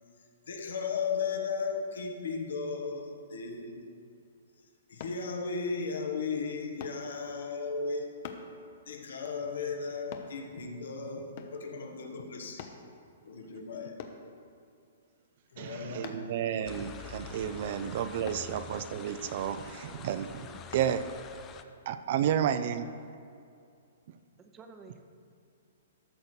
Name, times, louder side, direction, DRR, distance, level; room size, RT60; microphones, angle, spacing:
voice 1, 0.5-3.8 4.9-8.1 8.9-12.7 13.2-14.0 15.5-16.4, left 5 dB, 75° left, 2 dB, 1.5 m, -35 dB
sound 1, 5.0-5.2 6.8-7.0 8.2-8.5 10.1-10.3 11.4-11.6 12.6-12.8 14.0-14.2 16.0-16.3 18.2-18.5 20.7-20.9 21.5-21.6, left 7 dB, 45° left, 0.9 m, -44 dB
voice 2, 15.6-21.1 21.9-22.9, right 9 dB, 50° right, 11 dB, 0.5 m, -32 dB
sound 2, 16.7-21.6, left 7 dB, 20° left, 0.5 m, -46 dB
voice 3, 24.4-25.0, right 4 dB, 15° right, 5 dB, 0.8 m, -53 dB
13.0 x 6.6 x 4.5 m, 2.4 s
hypercardioid pair, 150°, 0 cm